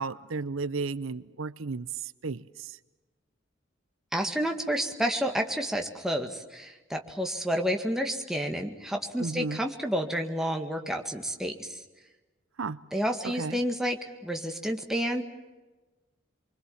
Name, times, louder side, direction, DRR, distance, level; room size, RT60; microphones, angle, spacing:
voice 1, 0.0-2.8 9.2-9.6 12.6-12.8 13.2-13.6, right 4 dB, 85° right, 16 dB, 0.7 m, -34 dB
voice 2, 4.1-11.8 12.9-15.2, equal, ahead, 3 dB, 2.0 m, -30 dB
25.0 x 24.5 x 7.3 m, 1.2 s
head